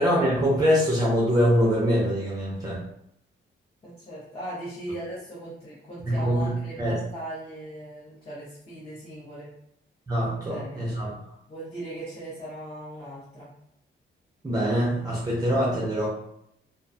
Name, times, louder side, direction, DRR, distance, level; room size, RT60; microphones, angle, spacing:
voice 1, 0.0-2.8 6.1-6.5 6.8-7.0 10.1-11.1 14.4-16.1, equal, 20° right, -6 dB, 0.5 m, -23 dB
voice 2, 3.8-9.5 10.5-10.8 11.5-13.5, right 1 dB, 25° left, -9 dB, 0.6 m, -38 dB
2.4 x 2.2 x 2.5 m, 0.76 s
wide cardioid pair, 175°, 21 cm